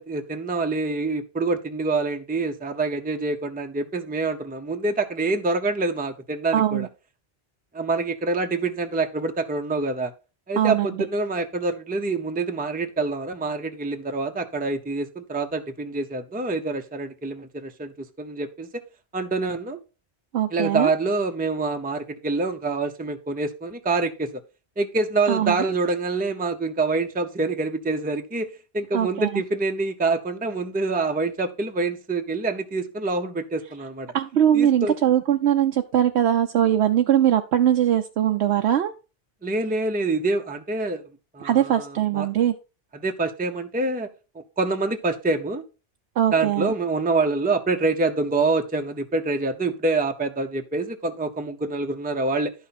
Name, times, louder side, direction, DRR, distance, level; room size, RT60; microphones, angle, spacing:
voice 1, 0.0-6.9 7.7-10.1 10.5-18.7 19.1-19.8 20.5-24.4 24.8-28.5 28.7-34.1 34.5-35.0 39.4-41.0 41.3-42.3 42.9-44.1 44.6-45.6 46.3-52.5, right 3 dB, 10° right, 6 dB, 0.6 m, -26 dB
voice 2, 6.5-6.9 10.6-10.9 20.3-20.9 25.3-25.6 28.9-29.4 34.1-38.9 41.4-42.5 46.2-46.7, right 10 dB, 75° right, 6 dB, 0.9 m, -21 dB
11.5 x 5.7 x 4.2 m, 0.32 s
omnidirectional pair, 1.1 m